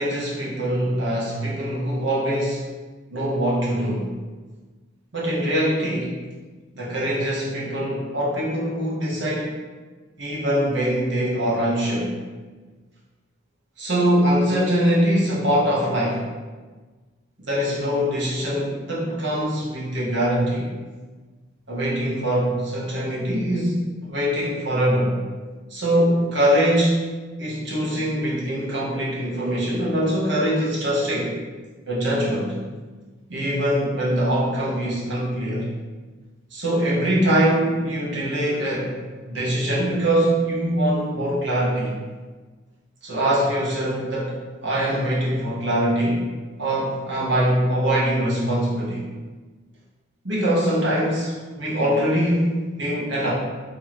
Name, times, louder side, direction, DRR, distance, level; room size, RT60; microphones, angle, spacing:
voice 1, 0.0-2.6 3.1-4.1 5.1-6.1 6.7-9.5 10.2-12.1 13.8-16.2 17.4-20.7 21.7-25.2 25.7-27.0 27.4-31.3 31.9-32.5 33.3-35.7 36.5-38.9 39.2-41.9 43.0-44.3 44.6-46.2 46.6-49.1 50.2-53.3, equal, 65° right, -6 dB, 1.1 m, -23 dB
3.0 x 2.9 x 4.1 m, 1.3 s
head